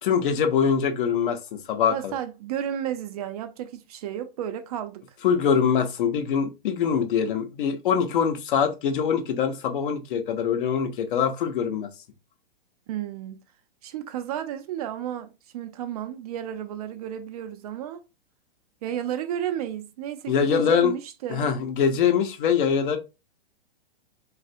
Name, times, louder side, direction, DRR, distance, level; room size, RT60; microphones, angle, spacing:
voice 1, 0.0-2.1 5.2-11.9 20.3-20.9 21.3-23.0, left 7 dB, 55° left, 0.7 m, -23 dB
voice 2, 1.9-5.2 12.9-13.4 13.8-18.0 18.8-21.5, right 10 dB, 40° right, 0.4 m, -32 dB
3.2 x 2.4 x 2.5 m
hypercardioid pair, 120°, 31 cm